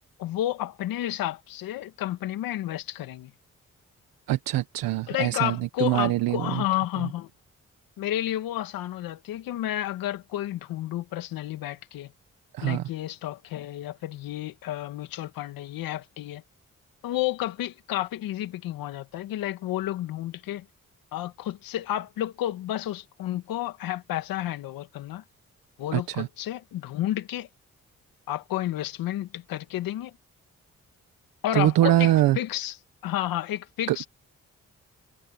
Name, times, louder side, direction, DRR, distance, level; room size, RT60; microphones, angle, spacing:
voice 1, 0.2-3.3 5.1-7.3 8.0-12.1 12.6-16.4 17.0-20.6 21.1-25.2 25.8-27.5 28.3-30.1 31.4-32.8 33.0-34.1, left 13 dB, 85° left, 2.1 m, -31 dB
voice 2, 4.3-6.6 12.5-12.8 25.9-26.3 31.5-32.4 33.9-34.1, right 14 dB, 90° right, 1.2 m, -23 dB
supercardioid pair, 40°, 34 cm